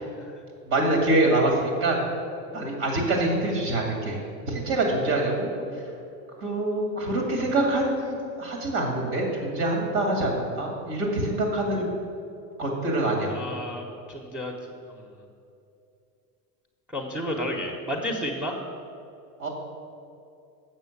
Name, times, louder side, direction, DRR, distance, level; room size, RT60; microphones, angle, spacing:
voice 1, 0.7-2.0 2.5-4.2 4.5-5.5 6.4-11.9 12.6-13.4 19.4-19.5, right 2 dB, 65° right, 1 dB, 2.4 m, -25 dB
voice 2, 13.3-14.5 14.9-15.0 16.9-18.6, equal, 5° right, -3 dB, 0.9 m, -32 dB
7.4 x 6.0 x 7.1 m, 2.6 s
hypercardioid pair, 105°, 47 cm